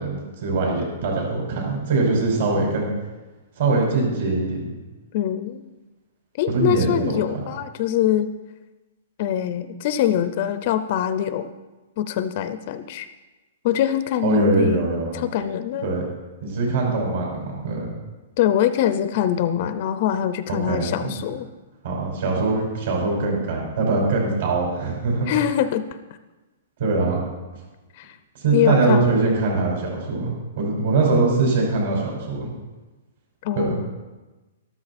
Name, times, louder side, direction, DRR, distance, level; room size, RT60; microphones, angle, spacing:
voice 1, 0.0-2.9 3.6-4.7 6.5-7.2 14.2-15.2 15.8-16.0 16.4-17.9 20.5-21.1 21.8-25.3 26.8-27.2 28.4-32.5 33.5-33.7, right 3 dB, 50° right, -1 dB, 5.4 m, -22 dB
voice 2, 5.1-5.6 6.4-8.3 9.2-11.5 12.0-13.1 13.6-14.8 15.1-15.9 18.4-21.5 25.3-25.9 28.0-28.1 28.5-29.1 33.4-33.9, left 10 dB, 35° left, 12 dB, 0.5 m, -23 dB
13.0 x 13.0 x 4.2 m, 1.2 s
hypercardioid pair, 175°, 0 cm